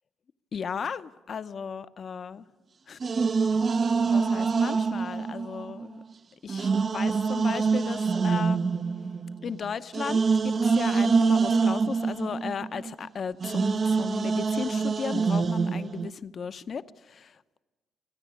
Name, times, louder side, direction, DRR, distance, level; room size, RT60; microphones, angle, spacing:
voice 1, 0.5-2.5 2.9-3.0 3.4-3.5 4.0-6.0 6.4-8.6 9.4-17.6, left 6 dB, 50° left, 13 dB, 0.7 m, -35 dB
sound 1, 3.0-6.0 6.5-13.1 13.4-16.1, right 5 dB, 45° right, 0.7 m, -25 dB
29.0 x 10.0 x 9.5 m, 1.2 s
cardioid pair, 90°, 0 cm